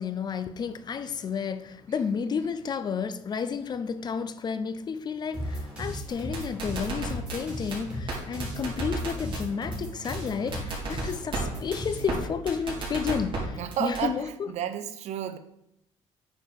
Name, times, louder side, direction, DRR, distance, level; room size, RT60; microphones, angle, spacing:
voice 1, 0.0-14.5, left 6 dB, 35° left, 0.5 m, -31 dB
sound 1, 5.3-12.1, equal, 10° right, 3.7 m, -36 dB
sound 2, 6.1-7.4 7.7-7.8 8.1-8.2 8.4-9.4 9.7-9.8 10.1-10.2 10.5-11.4 11.7-11.8 12.1-12.2 12.5-13.4 13.7-14.0, right 3 dB, 45° right, 3.6 m, -33 dB
voice 2, 13.6-15.4, right 10 dB, 70° right, 0.7 m, -31 dB
9.1 x 4.7 x 5.3 m
cardioid pair, 125°, 12 cm